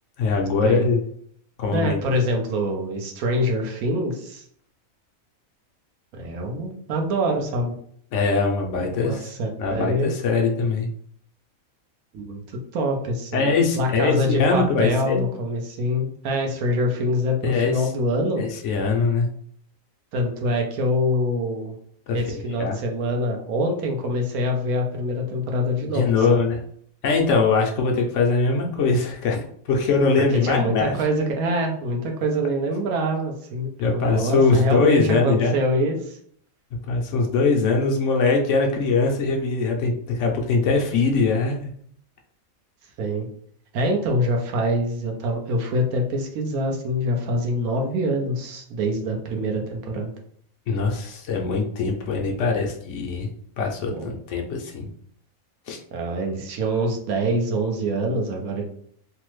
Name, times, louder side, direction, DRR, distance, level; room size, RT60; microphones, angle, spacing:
voice 1, 0.2-1.0 1.6-2.0 8.1-9.3 9.6-10.9 13.3-15.3 17.4-17.9 18.4-19.3 22.1-22.2 22.6-22.8 25.9-26.6 27.0-29.4 29.7-31.0 33.8-35.5 36.9-41.7 50.7-53.3 53.6-54.9 55.7-55.8, left 4 dB, 70° left, 1 dB, 0.9 m, -22 dB
voice 2, 1.7-4.4 6.1-7.7 8.7-10.1 12.1-13.4 13.8-18.4 20.1-21.7 22.1-26.4 30.3-36.2 43.0-43.3 43.7-50.1 53.9-54.1 55.9-58.7, equal, 85° right, 2 dB, 1.1 m, -25 dB
3.2 x 2.0 x 3.1 m, 0.63 s
omnidirectional pair, 1.4 m